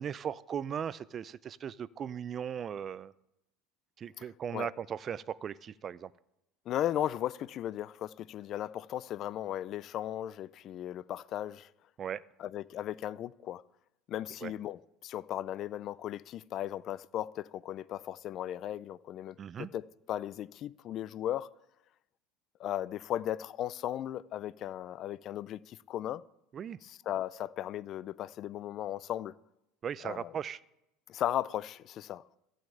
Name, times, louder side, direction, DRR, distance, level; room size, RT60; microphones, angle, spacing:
voice 1, 0.0-3.1 4.0-6.1 12.0-12.2 14.4-14.5 19.4-19.7 26.5-26.8 29.8-30.6, right 8 dB, 35° right, 0.4 m, -38 dB
voice 2, 6.7-11.7 12.4-13.6 14.1-21.5 22.6-26.2 26.8-29.4 30.0-30.3 31.1-32.4, left 12 dB, 45° left, 0.4 m, -36 dB
14.5 x 6.4 x 8.5 m
supercardioid pair, 120°, 0 cm